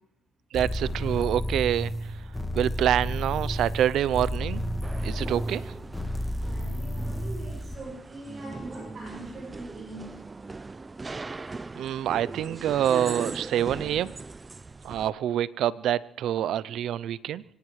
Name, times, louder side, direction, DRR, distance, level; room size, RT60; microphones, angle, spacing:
sound 1, 0.5-7.8, equal, 15° left, 1.5 m, -32 dB
voice 1, 0.5-2.1 2.5-4.6 5.0-5.8 11.8-14.2 14.8-17.4, right 11 dB, 75° right, 0.5 m, -26 dB
sound 2, 4.8-15.1, right 3 dB, 25° right, 0.5 m, -40 dB
voice 2, 6.4-10.1, right 1 dB, 45° right, 6.7 m, -43 dB
24.5 x 18.0 x 3.2 m
cardioid pair, 90°, 0 cm